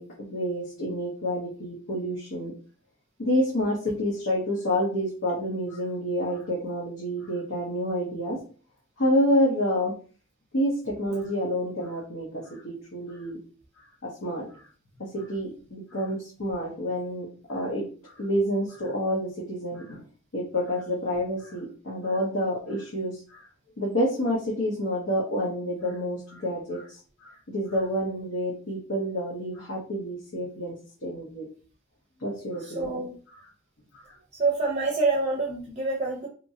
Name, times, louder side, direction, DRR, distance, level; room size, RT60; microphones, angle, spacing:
voice 1, 0.0-2.5 3.2-8.4 9.0-10.0 10.5-13.4 14.0-14.7 15.0-20.0 20.3-23.5 23.8-30.8 31.0-31.5 32.2-33.4 34.0-34.1, equal, 70° left, -4 dB, 0.8 m, -28 dB
voice 2, 32.8-33.2 34.4-36.3, right 3 dB, 35° right, -1 dB, 0.6 m, -26 dB
2.8 x 2.5 x 2.7 m, 0.40 s
head